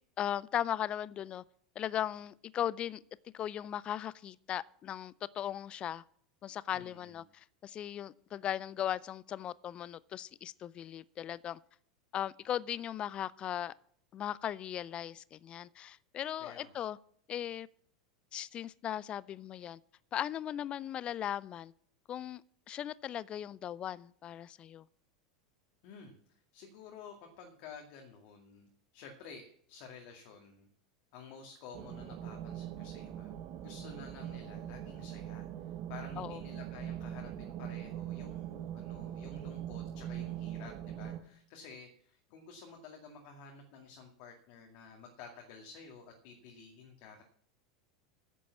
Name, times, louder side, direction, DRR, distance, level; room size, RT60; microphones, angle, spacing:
voice 1, 0.2-1.4 1.8-3.0 3.3-6.0 6.4-11.6 12.1-13.7 14.1-17.0 17.3-17.7 18.3-19.8 20.1-21.7 22.1-22.4 22.7-24.9 36.2-36.4, left 10 dB, 30° left, 0.4 m, -38 dB
voice 2, 6.7-7.2 16.4-16.7 25.8-26.2 26.5-30.7 31.1-33.3 33.6-47.2, left 5 dB, 50° left, 2.1 m, -52 dB
sound 1, 31.7-41.2, right 11 dB, 45° right, 1.2 m, -42 dB
10.0 x 8.4 x 7.2 m
figure-of-eight pair, 85°, 3 cm